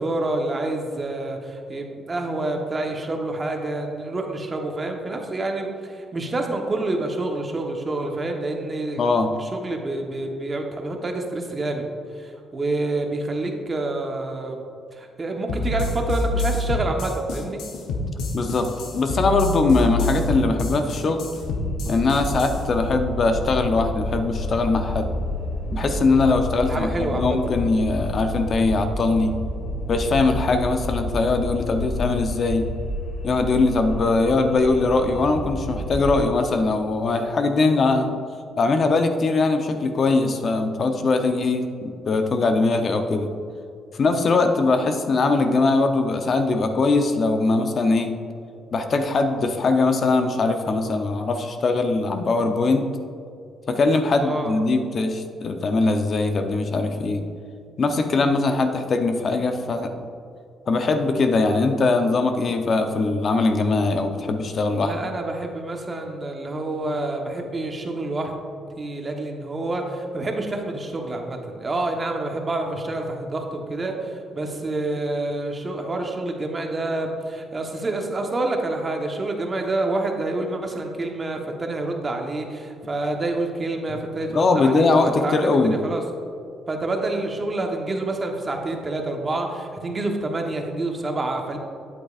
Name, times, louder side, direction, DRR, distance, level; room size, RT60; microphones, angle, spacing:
voice 1, 0.0-9.0 9.4-11.9 12.1-14.6 14.9-17.6 26.7-27.4 54.2-54.6 64.8-68.3 68.8-86.0 86.7-91.6, right 2 dB, 30° right, 2 dB, 1.1 m, -28 dB
voice 2, 9.0-9.3 18.3-21.3 21.8-25.1 25.7-29.4 29.9-32.6 33.2-38.1 38.6-43.3 43.9-48.1 48.7-52.9 53.7-57.2 57.8-60.0 60.7-65.0 84.3-85.8, left 3 dB, 50° left, 6 dB, 0.7 m, -21 dB
sound 1, 15.5-22.6, left 1 dB, 85° left, 0.9 m, -26 dB
sound 2, 21.4-36.2, left 1 dB, 70° left, 1.4 m, -30 dB
8.9 x 8.2 x 2.5 m, 2.4 s
cardioid pair, 90°, 0 cm